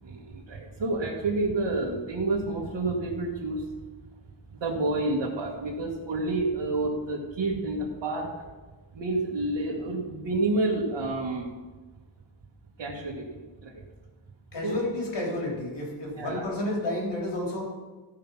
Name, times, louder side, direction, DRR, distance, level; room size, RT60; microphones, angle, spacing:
voice 1, 0.0-3.7 4.5-8.5 8.9-11.5 12.8-13.8 14.6-14.8 16.2-16.5, right 2 dB, 85° right, -5 dB, 2.0 m, -29 dB
voice 2, 14.5-17.7, left 1 dB, 65° left, -3 dB, 3.9 m, -31 dB
16.0 x 5.7 x 5.8 m, 1.3 s
wide cardioid pair, 145°, 45 cm